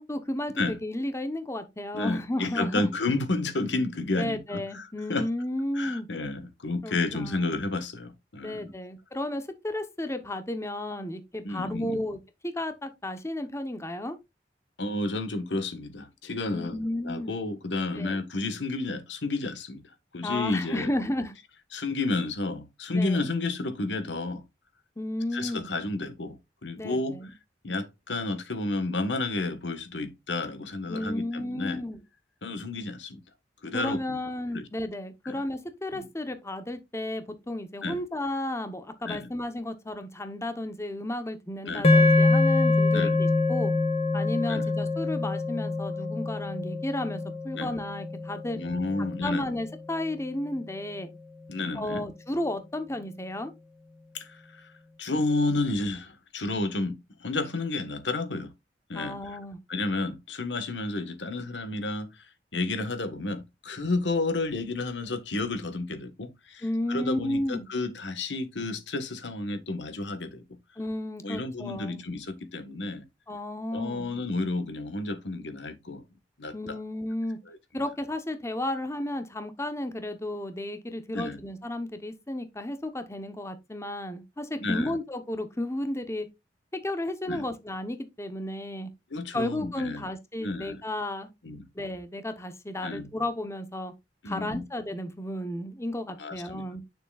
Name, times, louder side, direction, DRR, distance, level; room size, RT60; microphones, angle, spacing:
voice 1, 0.0-2.9 4.2-6.1 6.8-7.4 8.4-14.2 16.4-17.3 17.9-18.2 20.2-21.3 22.9-23.3 25.0-25.7 26.8-27.3 30.9-32.0 33.7-43.7 44.1-48.6 49.2-51.1 51.7-53.5 58.9-59.6 66.6-67.7 70.8-72.0 73.3-74.1 76.5-77.4 77.7-86.3 86.7-88.9 89.3-91.3 91.7-93.9 94.2-96.8, left 1 dB, 15° left, 0.9 m, -33 dB
voice 2, 1.9-5.3 5.7-8.7 11.4-12.0 14.8-19.8 20.1-20.9 21.7-24.4 25.3-27.2 27.6-31.8 32.4-33.2 33.6-34.2 34.5-34.7 35.2-35.4 35.9-36.1 37.8-38.0 39.0-39.3 41.6-41.9 42.9-43.2 44.5-44.6 47.5-47.7 48.5-49.6 51.5-52.1 54.1-54.7 55.0-58.5 58.9-59.4 59.7-62.2 62.5-70.4 71.2-73.0 73.7-76.0 76.4-76.8 77.5-77.6 81.1-81.4 84.6-85.0 87.3-87.4 89.1-90.0 90.4-90.8 91.4-91.6 92.8-93.1 94.2-94.6 96.2-96.6, left 2 dB, 90° left, 1.4 m, -31 dB
sound 1, 41.8-50.2, left 2 dB, 35° left, 1.5 m, -25 dB
8.9 x 6.8 x 2.4 m
head